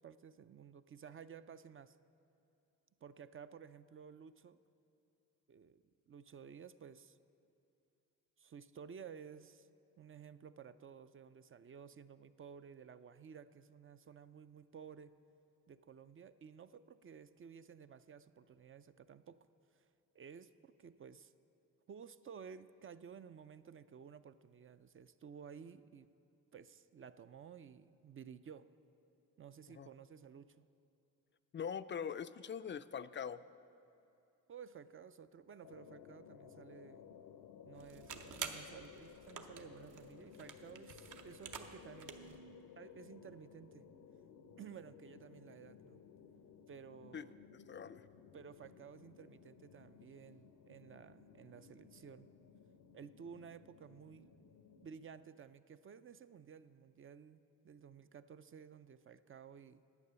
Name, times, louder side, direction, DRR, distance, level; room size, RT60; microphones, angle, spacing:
voice 1, 0.0-2.0 3.0-4.6 5.5-7.2 8.4-9.7 10.0-15.2 15.7-19.5 19.7-19.9 20.1-21.3 21.9-26.1 26.5-28.7 29.4-30.7 34.5-37.0 37.6-42.2 42.8-43.8 44.6-46.0 46.7-47.4 48.3-52.3 52.9-54.3 54.8-59.8, right 7 dB, 40° right, 13 dB, 0.4 m, -54 dB
voice 2, 31.5-33.4 47.1-47.2 47.5-48.0, left 7 dB, 35° left, 14 dB, 0.4 m, -43 dB
sound 1, 35.6-55.0, left 7 dB, 80° left, 0.7 m, -58 dB
sound 2, 37.7-42.4, right 6 dB, 60° right, 0.9 m, -49 dB
9.7 x 8.4 x 6.8 m, 2.7 s
cardioid pair, 65°, 34 cm